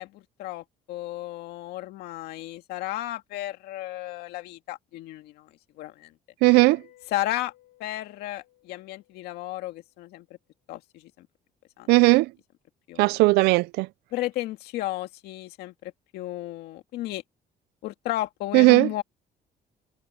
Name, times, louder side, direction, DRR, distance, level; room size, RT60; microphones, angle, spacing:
voice 1, 0.0-5.5 5.8-6.1 7.1-7.5 7.8-10.3 10.7-11.3 11.8-11.9 12.9-13.2 14.1-17.2 17.8-19.0, left 15 dB, 85° left, 2.1 m, -34 dB
voice 2, 6.4-6.8 11.9-12.3 13.0-13.9 18.5-18.9, right 23 dB, 90° right, 0.4 m, -17 dB
Mallet percussion, 6.5-9.9, left 15 dB, 60° left, 5.8 m, -57 dB
cardioid pair, 110°, 16 cm